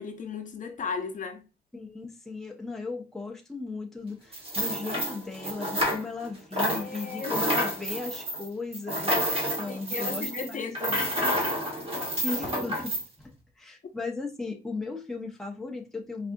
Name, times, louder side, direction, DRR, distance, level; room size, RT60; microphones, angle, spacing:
voice 1, 0.0-1.4 6.6-7.4 9.7-11.5, left 5 dB, 45° left, 0.7 m, -36 dB
voice 2, 1.7-11.0 12.2-16.3, left 3 dB, ahead, 0.6 m, -37 dB
sound 1, 4.3-6.3 6.5-13.0, equal, 30° right, 1.4 m, -29 dB
4.6 x 2.5 x 2.6 m
wide cardioid pair, 145°, 18 cm